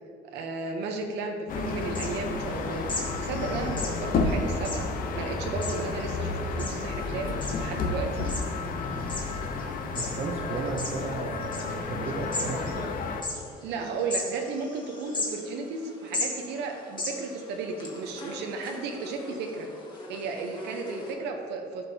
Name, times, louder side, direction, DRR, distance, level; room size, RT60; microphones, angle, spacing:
voice 1, 0.2-2.9 3.2-8.3 13.6-19.7 20.1-21.9, right 4 dB, 80° right, 3 dB, 0.8 m, -34 dB
sound 1, 1.5-13.2, left 3 dB, 55° left, 0.7 m, -31 dB
sound 2, 1.6-21.1, left 2 dB, 25° left, 1.6 m, -39 dB
voice 2, 9.9-12.9, right 3 dB, 40° right, 0 dB, 0.7 m, -34 dB
11.0 x 5.4 x 2.8 m, 2.3 s
cardioid pair, 110°, 17 cm